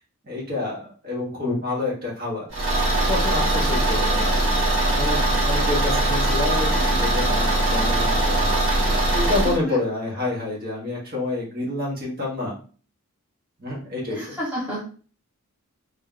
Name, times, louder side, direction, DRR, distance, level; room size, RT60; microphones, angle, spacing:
voice 1, 0.2-2.5 3.1-4.3 4.9-12.5 13.6-14.4, left 2 dB, 40° right, -4 dB, 1.6 m, -28 dB
Car / Engine, 2.5-9.6, right 1 dB, 65° right, 1.7 m, -21 dB
voice 2, 9.5-9.8 14.1-14.9, equal, 5° right, -7 dB, 1.0 m, -30 dB
3.3 x 3.1 x 3.8 m, 0.40 s
head